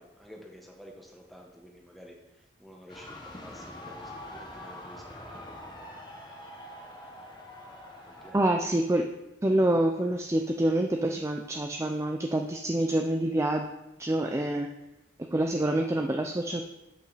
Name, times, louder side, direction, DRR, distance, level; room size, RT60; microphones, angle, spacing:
voice 1, 0.0-2.1 2.6-5.5 8.1-8.4, equal, ahead, 0 dB, 1.2 m, -50 dB
sound 1, 2.9-8.3, left 1 dB, 25° left, 1.1 m, -44 dB
voice 2, 8.3-9.1 9.4-13.6 14.0-14.7 15.3-16.6, right 1 dB, 15° right, 3 dB, 0.4 m, -26 dB
9.5 x 5.3 x 4.1 m, 0.96 s
head